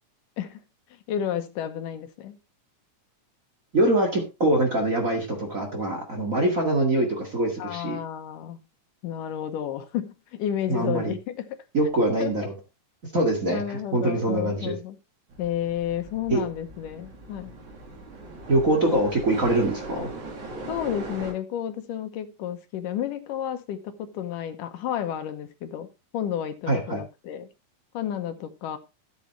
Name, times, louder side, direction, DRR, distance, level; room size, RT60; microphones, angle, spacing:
voice 1, 1.1-2.4 7.6-8.6 9.0-11.6 12.2-12.3 13.5-15.0 15.4-17.5 20.7-25.9 26.1-27.5 27.9-28.8, left 10 dB, 80° left, 2.6 m, -31 dB
voice 2, 3.7-8.0 10.7-11.1 11.7-12.5 13.1-14.8 16.3-16.4 18.5-20.1 26.7-27.0, right 1 dB, 30° right, 2.0 m, -24 dB
sound 1, 15.3-21.3, right 2 dB, 65° right, 4.0 m, -39 dB
13.5 x 8.3 x 3.1 m
omnidirectional pair, 3.8 m